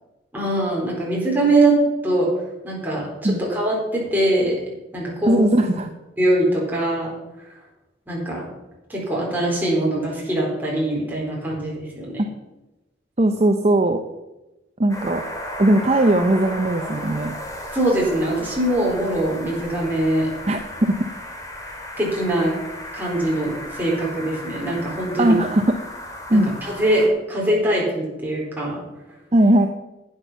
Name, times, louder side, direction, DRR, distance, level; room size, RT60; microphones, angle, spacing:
voice 1, 0.3-1.8 2.0-2.3 2.6-4.5 4.9-5.4 6.2-7.1 8.1-8.4 8.9-12.2 17.7-20.3 22.0-22.5 22.9-25.3 26.3-28.8, right 1 dB, 10° right, -4 dB, 4.0 m, -22 dB
voice 2, 5.3-5.9 13.2-14.0 14.8-15.2 15.6-17.3 20.5-20.9 25.2-25.8 26.3-26.5 29.3-29.7, right 1 dB, 35° right, 6 dB, 0.6 m, -18 dB
sound 1, 14.9-27.1, left 1 dB, 20° left, 2.0 m, -35 dB
11.5 x 9.1 x 5.6 m, 1.0 s
head